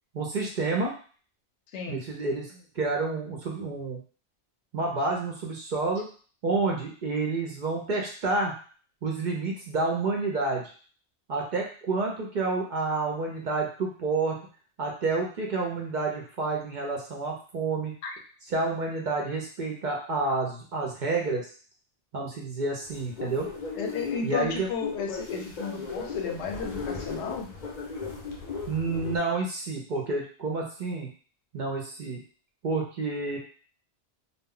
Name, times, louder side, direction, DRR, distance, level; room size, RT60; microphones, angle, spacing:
voice 1, 0.1-0.9 1.9-4.0 4.7-6.1 6.4-8.6 9.0-10.7 11.3-14.4 14.8-17.9 18.5-21.4 22.1-23.5 24.2-24.7 28.7-31.1 31.5-32.2 32.6-33.4, right 3 dB, 55° right, 0 dB, 0.6 m, -29 dB
voice 2, 1.7-2.0 18.0-18.2 23.7-27.5, left 5 dB, 85° left, 3 dB, 0.9 m, -33 dB
sound 1, 22.8-29.2, left 4 dB, 50° left, 0.6 m, -36 dB
2.1 x 2.0 x 3.6 m, 0.41 s
omnidirectional pair, 1.1 m